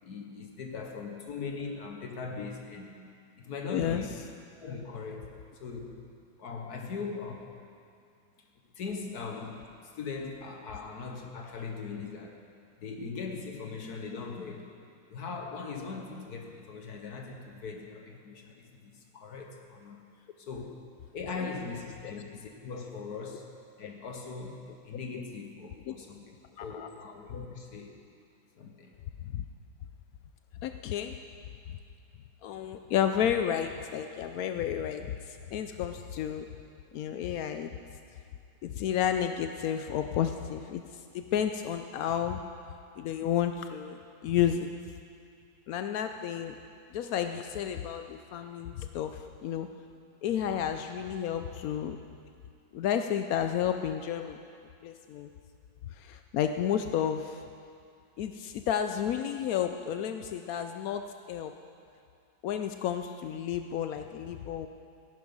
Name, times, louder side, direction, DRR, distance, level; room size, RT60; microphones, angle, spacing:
voice 1, 0.0-3.0 3.4-4.2 4.6-6.0 6.4-7.6 8.7-12.5 12.8-14.7 15.1-20.0 20.4-20.8 21.1-23.5 23.8-28.0 28.6-28.9, left 4 dB, 60° left, 3 dB, 1.4 m, -40 dB
voice 2, 3.7-4.0 21.4-21.5 25.9-26.0 26.6-26.9 29.2-29.4 30.6-31.2 32.4-36.4 36.9-37.7 38.6-40.8 41.1-42.4 43.0-44.7 45.7-46.5 46.9-49.7 50.2-52.0 52.7-54.4 54.8-55.3 55.9-57.4 58.2-61.5 62.4-64.7, left 9 dB, 85° left, 7 dB, 0.8 m, -31 dB
14.5 x 11.0 x 5.4 m, 2.4 s
omnidirectional pair, 2.1 m